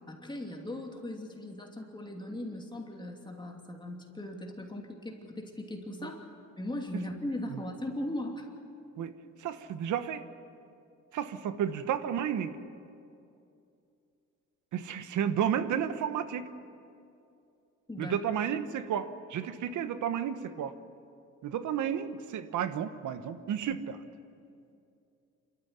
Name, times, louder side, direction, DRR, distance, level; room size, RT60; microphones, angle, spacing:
voice 1, 0.1-6.2 6.6-8.5 17.9-18.2, left 1 dB, 15° left, 1 dB, 2.8 m, -38 dB
voice 2, 9.4-10.2 11.1-12.6 14.7-16.5 18.0-20.7 21.4-24.0, right 9 dB, 75° right, 11 dB, 1.2 m, -32 dB
26.5 x 13.5 x 9.6 m, 2.6 s
cardioid pair, 90°, 30 cm